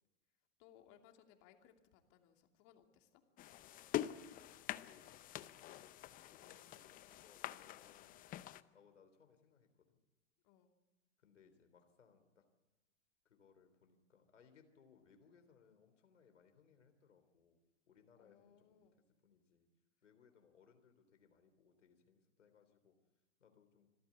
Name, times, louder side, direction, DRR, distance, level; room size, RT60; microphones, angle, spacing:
voice 1, 0.6-3.2 10.4-10.7 18.2-19.0, left 10 dB, 45° left, 4 dB, 2.8 m, -66 dB
sound 1, 3.4-8.6, left 13 dB, 25° left, 0.7 m, -45 dB
voice 2, 3.7-5.1 5.5-8.3 8.7-10.0 11.2-12.4 13.3-17.6 17.9-18.9 19.2-19.7 20.0-23.0 23.4-23.9, left 6 dB, 90° left, 7 dB, 3.6 m, -68 dB
26.0 x 13.5 x 8.5 m, 1.1 s
hypercardioid pair, 120°, 35 cm